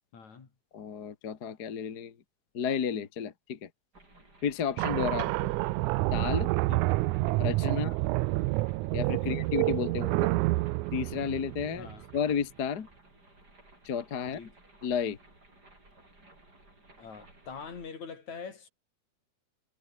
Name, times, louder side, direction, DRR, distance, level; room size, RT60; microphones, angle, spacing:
voice 1, 0.1-0.5 5.1-5.3 6.7-6.9 7.8-8.0 9.2-9.4 11.8-12.0 14.3-14.5 17.0-18.7, left 5 dB, 65° left, 5.1 m, -44 dB
voice 2, 0.7-2.2 2.5-3.7 4.4-5.5 6.1-6.5 7.4-8.0 8.9-10.3 10.9-11.9 12.1-12.9 13.8-14.4 14.8-15.2, left 7 dB, 40° left, 1.6 m, -32 dB
sound 1, 3.9-17.9, right 2 dB, 30° right, 8.5 m, -58 dB
sound 2, 4.8-12.2, right 21 dB, 80° right, 1.9 m, -28 dB
omnidirectional pair, 3.6 m